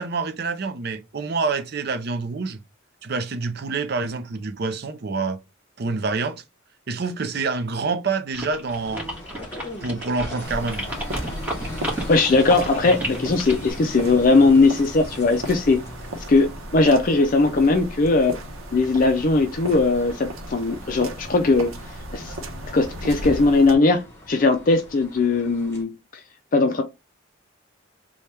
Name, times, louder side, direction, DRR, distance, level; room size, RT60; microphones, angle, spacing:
voice 1, 0.0-2.6 3.0-5.4 5.8-6.4 6.9-9.1 9.8-10.9, right 4 dB, 50° right, 0.5 m, -27 dB
sound 1, 8.3-13.7, right 1 dB, 10° right, 1.3 m, -32 dB
sound 2, 8.7-25.8, left 1 dB, 15° left, 1.2 m, -41 dB
sound 3, 10.4-23.7, right 1 dB, 85° right, 0.8 m, -35 dB
voice 2, 12.1-15.8 16.3-18.4 18.7-21.7 22.1-22.4 22.7-25.9 26.5-26.8, left 3 dB, 40° left, 0.4 m, -19 dB
3.3 x 2.3 x 4.2 m
head